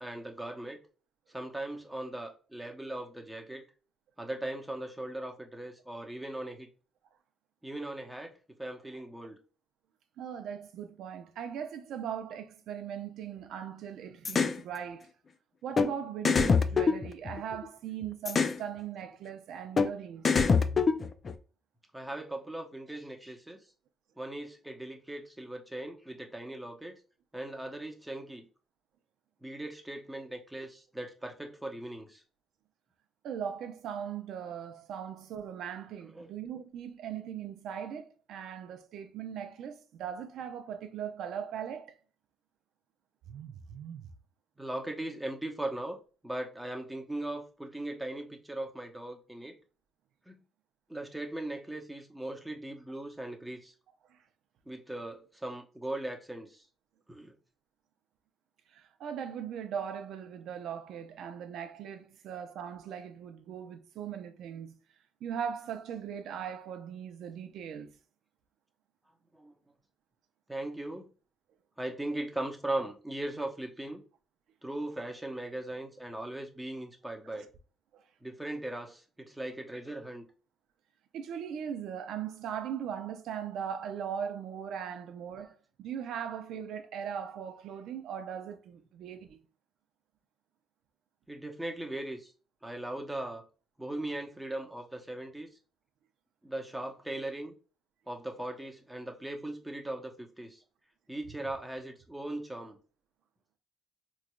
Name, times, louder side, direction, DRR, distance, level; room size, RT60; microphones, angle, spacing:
voice 1, 0.0-0.8 1.3-3.6 4.2-6.7 7.6-9.4 21.9-23.6 24.2-27.0 27.3-28.4 29.4-32.2 36.0-36.3 44.6-46.0 46.2-49.6 50.3-50.4 50.9-53.7 54.7-56.7 57.1-57.3 69.3-69.5 70.5-71.1 71.8-74.0 74.6-77.5 78.2-80.3 91.3-92.3 92.6-93.4 93.8-95.5 96.4-97.5 98.1-100.6 101.1-102.8, right 1 dB, 5° right, 0.8 m, -39 dB
voice 2, 10.2-15.1 15.6-20.3 33.2-41.9 43.3-44.1 54.1-54.2 58.7-64.7 65.2-67.9 77.3-77.4 77.9-78.0 81.1-89.4 101.3-101.4, right 8 dB, 80° right, 0.5 m, -39 dB
sound 1, 14.2-14.6 15.8-15.9 16.2-17.7 18.3-18.6 19.8-19.9 20.2-21.3, left 5 dB, 40° left, 0.4 m, -25 dB
3.7 x 3.1 x 2.2 m
cardioid pair, 90°, 0 cm